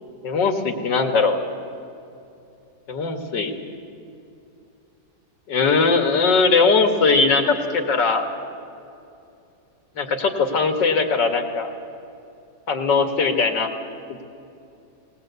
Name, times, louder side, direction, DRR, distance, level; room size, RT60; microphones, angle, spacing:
voice 1, 0.2-1.4 2.9-3.5 5.5-8.2 10.0-11.7 12.7-13.7 14.1-14.2, left 4 dB, 70° left, 5 dB, 2.4 m, -20 dB
19.5 x 19.5 x 8.2 m, 2.7 s
omnidirectional pair, 2.0 m